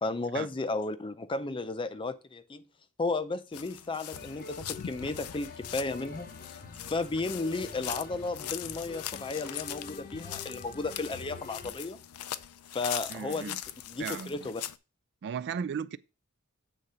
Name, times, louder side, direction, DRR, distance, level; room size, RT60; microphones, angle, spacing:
voice 1, 0.0-2.6 3.0-6.6 6.9-12.0 12.7-13.6 13.9-14.6, left 3 dB, 20° left, 0.5 m, -34 dB
sound 1, 3.5-14.8, left 12 dB, 80° left, 0.5 m, -41 dB
sound 2, 4.1-11.7, left 4 dB, 40° left, 0.8 m, -46 dB
voice 2, 13.1-13.6 14.0-14.5 15.2-16.0, right 7 dB, 50° right, 0.3 m, -36 dB
8.2 x 3.8 x 5.5 m
head